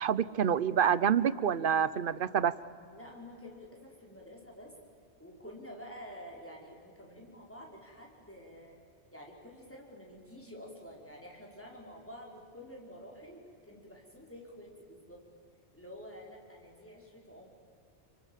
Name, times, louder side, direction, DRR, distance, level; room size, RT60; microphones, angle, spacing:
voice 1, 0.0-2.5, right 8 dB, 55° right, 17 dB, 0.9 m, -27 dB
voice 2, 2.9-4.7 5.2-8.8 9.1-15.2 15.7-17.5, equal, 10° left, -2 dB, 5.5 m, -49 dB
30.0 x 25.0 x 7.4 m, 2.4 s
omnidirectional pair, 1.2 m